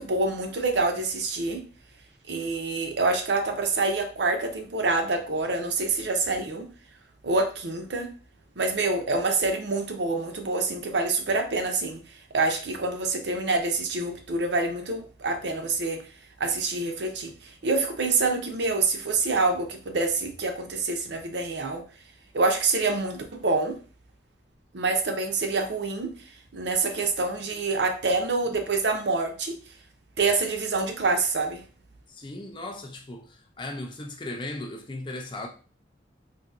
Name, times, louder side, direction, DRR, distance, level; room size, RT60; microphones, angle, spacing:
voice 1, 0.0-1.6 2.3-6.6 7.2-8.1 8.6-12.0 12.3-16.0 16.4-17.3 17.6-21.8 22.3-23.7 24.7-26.1 26.5-29.5 30.2-31.6, right 3 dB, 65° right, 0.6 m, -26 dB
voice 2, 32.1-35.5, left 2 dB, 25° left, 0.4 m, -37 dB
4.0 x 2.7 x 2.4 m
head